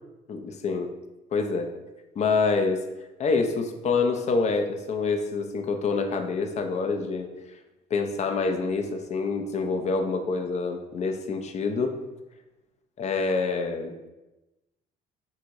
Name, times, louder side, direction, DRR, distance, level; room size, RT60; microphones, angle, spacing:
voice 1, 0.3-0.9 1.3-1.7 2.2-2.8 3.2-7.3 7.9-11.9 13.0-14.1, left 4 dB, 40° left, 5 dB, 0.5 m, -26 dB
3.6 x 2.6 x 4.5 m, 1.0 s
cardioid pair, 110°, 17 cm